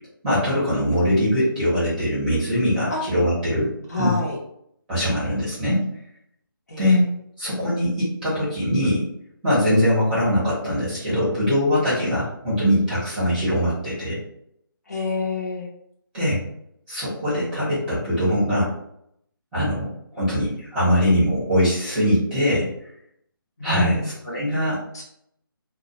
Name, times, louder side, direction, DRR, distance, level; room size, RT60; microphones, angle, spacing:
voice 1, 0.2-3.7 4.0-4.1 4.9-5.8 6.8-7.1 7.4-9.1 9.4-14.2 16.1-16.4 16.9-18.7 19.5-22.7 23.6-24.8, equal, 5° right, -10 dB, 0.7 m, -22 dB
voice 2, 3.9-4.4 6.7-6.9 14.9-15.7 19.6-19.7 23.6-24.1 24.9-25.0, left 2 dB, 45° left, -3 dB, 0.6 m, -27 dB
2.2 x 2.0 x 2.8 m, 0.73 s
figure-of-eight pair, 165°, 12 cm